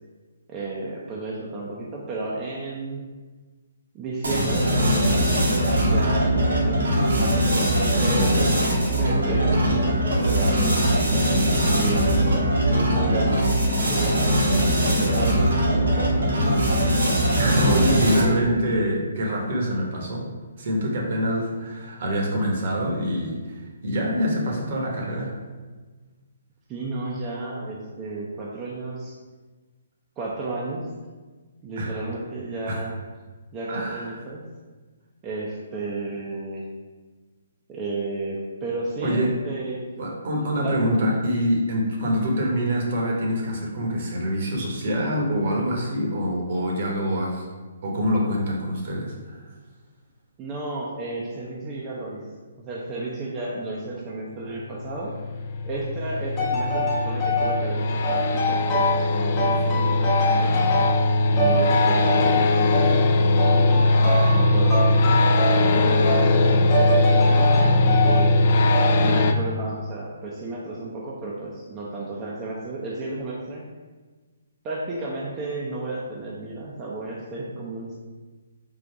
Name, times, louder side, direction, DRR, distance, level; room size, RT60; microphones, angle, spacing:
voice 1, 0.5-3.0 3.9-5.5 5.9-10.9 11.7-13.5 13.8-14.3 14.8-16.7 17.6-18.2 26.7-29.2 30.2-30.9 31.6-32.9 33.5-34.4 35.2-36.7 37.7-39.9 40.4-40.8 50.4-52.2 52.6-55.2 55.6-60.6 61.3-63.1 63.5-65.1 65.6-68.5 69.0-73.6 74.6-77.9, right 2 dB, 25° right, -5 dB, 0.6 m, -32 dB
sound 1, 4.2-18.4, equal, 80° right, 1.3 m, -21 dB
voice 2, 17.4-20.2 20.6-25.4 31.8-31.9 32.7-32.8 33.7-34.2 39.0-39.4 40.0-47.5 47.8-49.5, equal, 55° right, -1 dB, 1.1 m, -25 dB
sound 2, 54.5-69.3, left 2 dB, 50° left, 0.3 m, -20 dB
sound 3, 56.4-57.6 58.0-59.1 59.4-61.1 61.4-62.9 63.4-64.4 64.7-65.7 66.0-66.3 66.7-68.3 68.7-69.1, left 1 dB, 25° left, 1.0 m, -25 dB
3.8 x 2.5 x 4.5 m, 1.3 s
hypercardioid pair, 145°, 0 cm